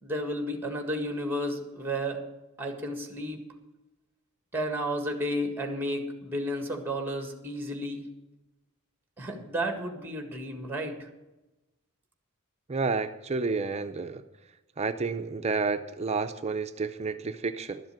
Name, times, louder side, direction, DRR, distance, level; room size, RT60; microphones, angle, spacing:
voice 1, 0.0-2.2 2.6-3.4 4.5-8.0 9.2-11.1, equal, 10° right, 5 dB, 1.7 m, -32 dB
voice 2, 12.7-14.2 14.8-17.8, right 4 dB, 30° right, 8 dB, 0.5 m, -30 dB
12.5 x 7.7 x 7.4 m, 1.0 s
head